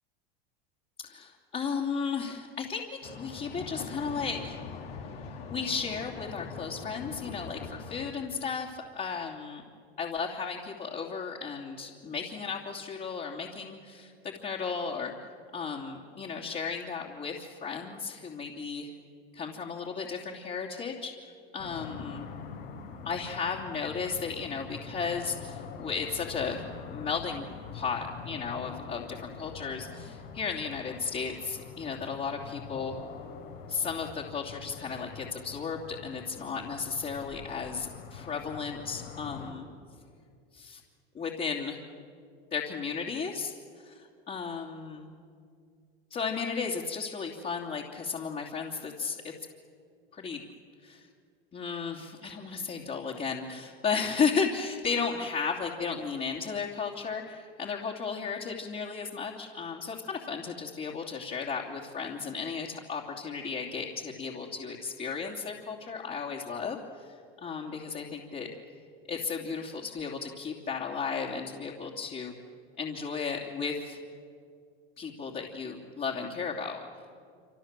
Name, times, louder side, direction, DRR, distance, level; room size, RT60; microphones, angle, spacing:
voice 1, 1.0-4.6 5.5-9.6 10.0-15.1 15.5-18.9 19.3-22.3 23.0-26.6 26.9-27.5 27.7-32.9 33.7-39.7 40.5-40.8 41.1-41.8 42.5-45.1 46.1-49.3 50.1-50.4 50.8-51.1 51.5-66.8 67.4-68.5 69.0-72.3 72.8-74.0 75.0-76.8, left 5 dB, 30° left, -3 dB, 3.0 m, -34 dB
sound 1, 3.0-8.1, left 5 dB, 90° left, 3.7 m, -42 dB
sound 2, 21.6-39.5, left 6 dB, 70° left, 4.2 m, -44 dB
27.0 x 26.5 x 7.6 m, 2.3 s
hypercardioid pair, 105°, 29 cm